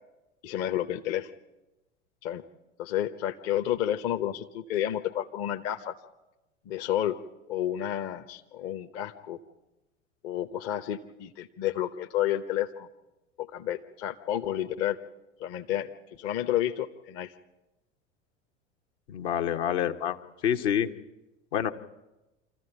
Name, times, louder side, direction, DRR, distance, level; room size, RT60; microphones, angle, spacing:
voice 1, 0.4-1.3 2.2-2.4 2.8-5.9 6.6-7.2 7.5-9.4 10.2-12.9 13.4-15.0 15.4-17.3, left 12 dB, 40° left, 7 dB, 1.0 m, -30 dB
voice 2, 19.1-20.9 21.5-21.7, left 9 dB, 55° left, 5 dB, 1.3 m, -27 dB
26.5 x 14.5 x 9.1 m, 1.0 s
figure-of-eight pair, 85°, 38 cm